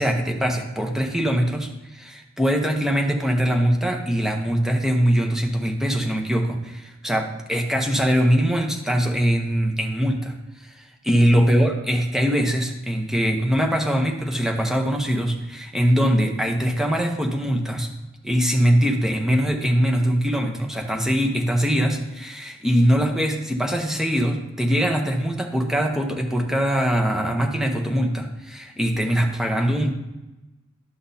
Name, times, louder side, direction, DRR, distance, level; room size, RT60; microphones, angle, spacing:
voice 1, 0.0-10.3 10.6-10.7 11.0-17.9 18.2-29.9, equal, ahead, 2 dB, 0.8 m, -22 dB
11.5 x 6.0 x 2.7 m, 1.1 s
head